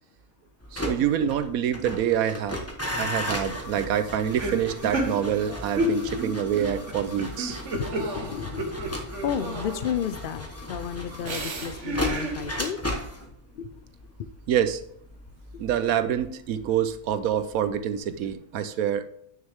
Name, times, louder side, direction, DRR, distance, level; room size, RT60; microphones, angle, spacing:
sound 1, 0.6-17.6 17.9-18.3, left 1 dB, 10° left, 1.2 m, -36 dB
voice 1, 0.7-2.6 3.0-7.6 14.5-14.8 15.6-19.1, right 9 dB, 85° right, 11 dB, 1.2 m, -26 dB
sound 2, 4.3-10.1 11.3-12.4, right 1 dB, 60° right, 1.6 m, -32 dB
voice 2, 7.7-12.8 13.6-13.7, left 8 dB, 75° left, 12 dB, 0.5 m, -32 dB
9.1 x 6.5 x 3.5 m, 0.69 s
omnidirectional pair, 1.4 m